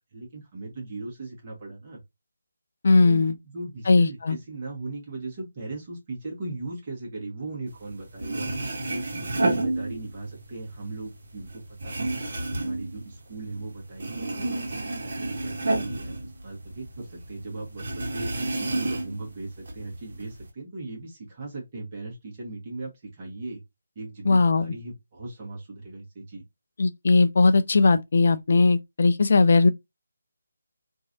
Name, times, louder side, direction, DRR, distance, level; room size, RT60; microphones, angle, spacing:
voice 1, 0.1-2.0 3.1-8.5 8.9-12.2 12.6-23.6 23.9-26.4, right 2 dB, 30° right, 1.3 m, -38 dB
voice 2, 2.8-3.4 3.9-4.4 24.3-24.7 26.8-29.7, left 3 dB, 50° left, 0.3 m, -19 dB
sound 1, 7.9-8.0 8.2-10.4 10.7-13.7 13.9-16.9 17.2-17.3 17.8-19.3 19.6-20.4, right 2 dB, 55° right, 1.3 m, -30 dB
3.0 x 2.7 x 2.5 m
figure-of-eight pair, 155°, 0 cm